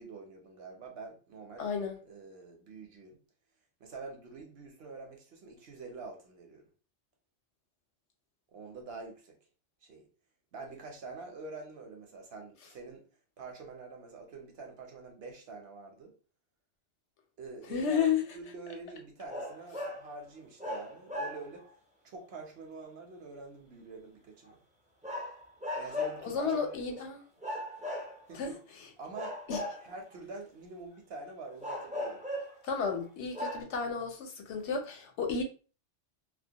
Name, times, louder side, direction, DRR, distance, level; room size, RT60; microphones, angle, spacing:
voice 1, 0.0-1.7 2.1-3.2 3.8-6.6 8.5-9.4 9.8-10.1 10.5-13.1 13.4-16.1 17.4-21.7 22.0-24.6 25.8-26.9 28.3-28.6 29.0-29.4 29.8-32.2, right 3 dB, 65° right, 0.9 m, -46 dB
voice 2, 1.6-2.0 17.7-18.2 26.2-27.2 28.3-28.5 29.5-29.6 32.6-35.4, left 6 dB, 75° left, 0.9 m, -32 dB
sound 1, 19.2-20.1 20.6-21.7 25.0-26.3 27.4-28.5 29.1-30.1 31.6-32.6 33.0-33.1 33.3-33.6, left 1 dB, 10° right, 0.3 m, -37 dB
2.3 x 2.1 x 2.7 m
omnidirectional pair, 1.2 m